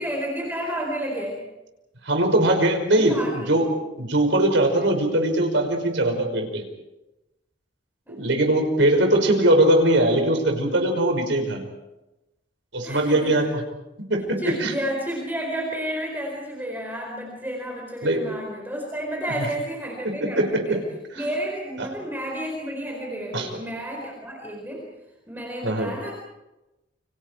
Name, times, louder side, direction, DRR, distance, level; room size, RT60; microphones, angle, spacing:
voice 1, 0.0-1.4 3.0-3.6 8.1-8.3 12.8-13.5 14.4-20.8 21.2-24.9 25.3-26.1, right 1 dB, 10° right, -1 dB, 4.5 m, -31 dB
voice 2, 2.1-3.7 4.0-6.6 8.1-11.6 12.7-13.4 14.1-14.7 18.0-18.2 20.4-20.8 21.8-21.9 23.3-23.5 25.6-25.9, right 1 dB, 90° right, 4 dB, 5.4 m, -21 dB
29.0 x 26.5 x 4.6 m, 0.99 s
head